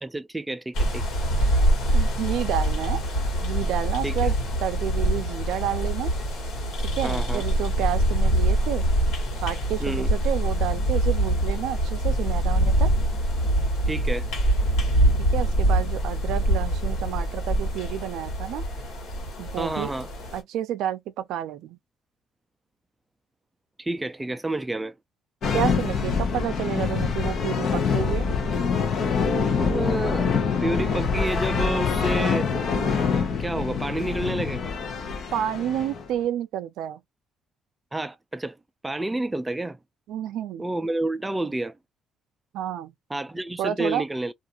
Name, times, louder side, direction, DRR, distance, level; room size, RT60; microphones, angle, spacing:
voice 1, 0.0-1.0 4.0-4.3 7.0-7.4 9.8-10.1 13.9-14.2 19.6-20.1 23.8-25.0 29.6-30.3 30.6-32.5 33.1-34.7 37.9-38.6 38.8-39.8 40.6-41.8 43.1-44.3, right 2 dB, 15° right, 0.3 m, -29 dB
sound 1, 0.8-20.4, right 1 dB, 80° left, 1.5 m, -24 dB
voice 2, 1.9-3.0 3.4-4.3 4.6-6.1 6.8-8.9 9.4-12.9 15.2-18.6 19.4-19.9 20.3-21.8 25.5-28.2 35.3-37.0 40.1-40.6 42.5-42.9 43.6-44.0, right 11 dB, 80° right, 0.4 m, -30 dB
sound 2, 25.4-36.1, left 5 dB, 60° left, 0.7 m, -25 dB
2.4 x 2.4 x 2.8 m
cardioid pair, 95°, 0 cm